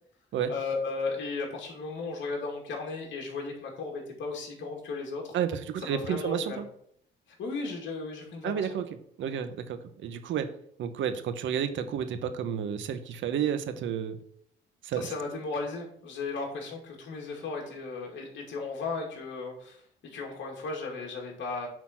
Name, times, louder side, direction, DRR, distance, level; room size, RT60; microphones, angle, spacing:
voice 1, 0.5-5.4 5.8-6.6 7.3-8.8 15.0-21.7, left 3 dB, 65° left, 0 dB, 2.4 m, -35 dB
voice 2, 5.3-6.6 8.4-8.9 9.2-10.5 10.8-14.2 14.8-15.0, right 8 dB, 75° right, 10 dB, 1.0 m, -31 dB
9.0 x 4.1 x 5.8 m, 0.67 s
cardioid pair, 90°, 20 cm